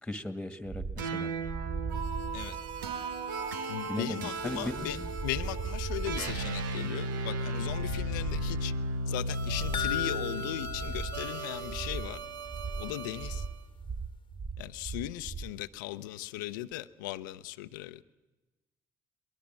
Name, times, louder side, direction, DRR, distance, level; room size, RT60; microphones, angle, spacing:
voice 1, 0.0-1.3 3.9-5.1, left 1 dB, 5° left, 11 dB, 2.0 m, -37 dB
sound 1, 0.7-15.6, right 5 dB, 25° right, 1.0 m, -39 dB
sound 2, 1.0-13.5, right 2 dB, 90° right, 1.1 m, -36 dB
voice 2, 3.7-8.7 9.1-12.2 12.8-13.5 14.6-18.0, left 15 dB, 85° left, 14 dB, 0.7 m, -38 dB
sound 3, 9.7-12.3 12.6-12.7 13.1-13.2, left 10 dB, 55° left, 1.1 m, -37 dB
23.0 x 21.0 x 7.6 m, 1.1 s
hypercardioid pair, 55°, 10 cm